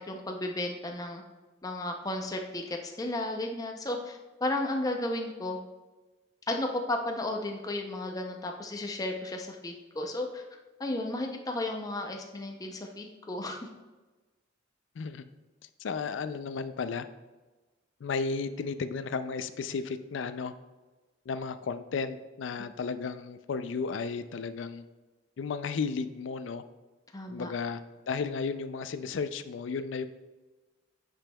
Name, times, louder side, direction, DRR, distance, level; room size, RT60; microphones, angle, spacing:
voice 1, 0.1-1.2 1.6-5.6 6.5-10.4 10.8-13.6 27.1-27.5, left 1 dB, 20° left, 2 dB, 0.5 m, -33 dB
voice 2, 15.8-17.1 18.0-20.5 21.3-24.8 25.4-26.6 27.3-27.8 28.1-30.1, left 5 dB, 75° left, 12 dB, 0.4 m, -33 dB
8.7 x 5.2 x 2.3 m, 1.2 s
head